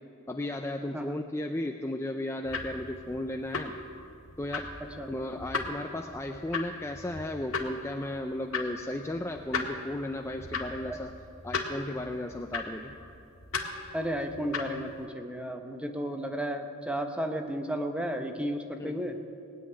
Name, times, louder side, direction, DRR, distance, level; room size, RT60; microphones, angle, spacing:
voice 1, 0.3-3.7 4.4-4.7 5.1-11.1 11.4-13.0 18.8-18.9, left 1 dB, 10° left, 4 dB, 0.4 m, -35 dB
sound 1, 2.4-15.1, left 4 dB, 75° left, 1.7 m, -38 dB
voice 2, 4.8-5.1 10.8-11.0 13.9-19.2, equal, 5° right, 5 dB, 0.9 m, -33 dB
19.0 x 7.8 x 9.7 m, 2.7 s
head